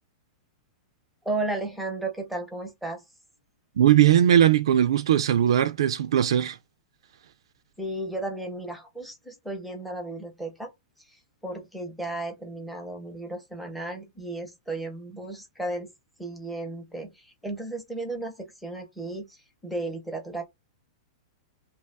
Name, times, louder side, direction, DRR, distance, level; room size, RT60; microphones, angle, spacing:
voice 1, 1.2-3.0 7.8-10.7 11.4-15.9 16.2-20.5, right 2 dB, ahead, 0.6 m, -34 dB
voice 2, 3.8-6.6, right 10 dB, 80° right, 0.3 m, -19 dB
2.8 x 2.3 x 3.3 m
supercardioid pair, 165°, 3 cm